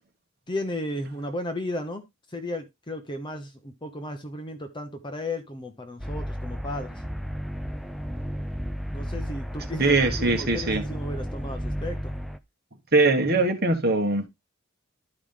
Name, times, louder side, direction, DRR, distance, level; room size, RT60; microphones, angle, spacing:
voice 1, 0.5-2.0 2.3-7.0 8.9-12.1, left 1 dB, 20° left, 0.9 m, -34 dB
sound 1, 6.0-12.4, equal, ahead, 0.5 m, -33 dB
voice 2, 9.8-11.0 12.9-14.2, right 3 dB, 45° right, 1.5 m, -22 dB
12.0 x 4.9 x 3.8 m
head